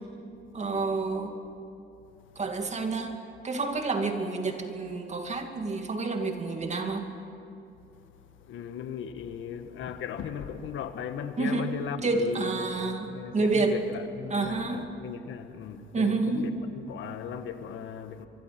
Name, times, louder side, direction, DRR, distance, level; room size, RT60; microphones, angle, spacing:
voice 1, 0.5-1.3 2.4-7.1 11.4-11.7 12.0-13.1 13.3-13.8 14.3-14.8 15.9-16.6, right 3 dB, 35° right, 2.5 m, -29 dB
voice 2, 7.9-18.3, left 8 dB, 80° left, 1.5 m, -37 dB
24.5 x 23.5 x 6.0 m
cardioid pair, 90°, 20 cm